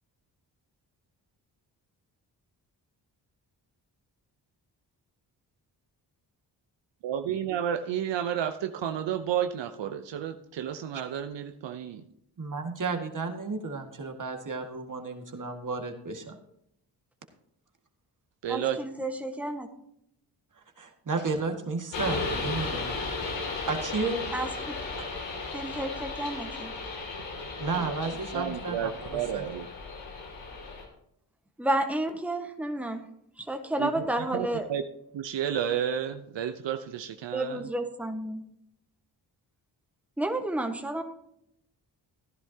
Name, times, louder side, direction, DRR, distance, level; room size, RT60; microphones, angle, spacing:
voice 1, 7.0-12.0 18.4-18.8 27.3-27.9 28.3-29.7 33.8-33.9 34.3-34.8 35.1-37.6, right 9 dB, 75° right, 8 dB, 0.8 m, -31 dB
voice 2, 12.4-16.4 20.8-23.1 23.7-24.2 27.6-29.5, right 4 dB, 45° right, 4 dB, 2.0 m, -33 dB
voice 3, 18.5-19.7 24.3-24.7 25.5-26.7 31.6-33.1 33.4-34.7 37.3-38.4 40.2-41.0, right 1 dB, 5° right, 5 dB, 1.4 m, -31 dB
sound 1, 21.9-30.8, left 3 dB, 90° left, 2.7 m, -35 dB
15.0 x 10.5 x 2.9 m, 0.77 s
cardioid pair, 55°, 44 cm